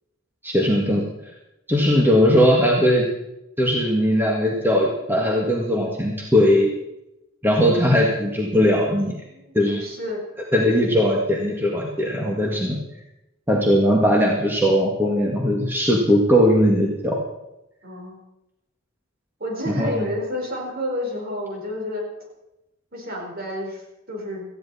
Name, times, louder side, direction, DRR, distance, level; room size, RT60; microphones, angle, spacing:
voice 1, 0.4-1.0 1.7-3.1 3.6-6.7 7.4-9.2 9.5-9.8 10.5-12.8 13.5-17.2 19.7-20.1, equal, 10° right, -1 dB, 1.8 m, -19 dB
voice 2, 9.3-10.3 17.8-18.2 19.4-22.0 22.9-24.5, left 1 dB, 50° right, 0 dB, 4.6 m, -30 dB
18.5 x 14.5 x 4.2 m, 0.92 s
head